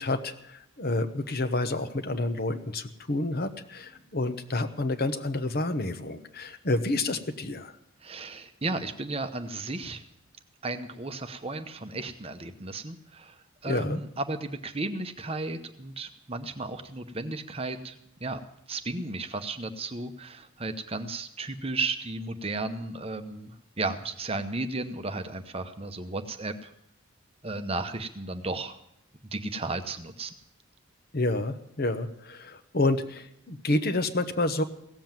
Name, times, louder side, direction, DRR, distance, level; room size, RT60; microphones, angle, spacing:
voice 1, 0.0-7.7 13.7-14.0 31.1-34.6, left 2 dB, 45° left, 8 dB, 1.0 m, -29 dB
voice 2, 8.0-10.0 10.6-18.4 18.7-26.7 27.4-28.7 29.3-30.3, right 3 dB, 25° right, 8 dB, 0.8 m, -34 dB
17.0 x 7.7 x 9.0 m, 0.78 s
head